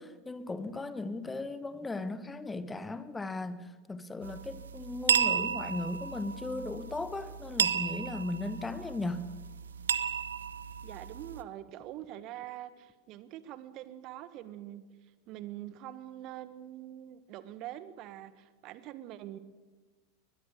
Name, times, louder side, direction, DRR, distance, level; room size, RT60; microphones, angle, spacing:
voice 1, 0.0-9.3, left 2 dB, 10° left, 1.4 m, -37 dB
sound 1, 4.2-11.4, right 7 dB, 75° right, 0.9 m, -33 dB
voice 2, 10.8-14.8 15.3-19.4, right 13 dB, 45° right, 1.5 m, -44 dB
22.0 x 20.5 x 6.7 m
figure-of-eight pair, 85°, 0 cm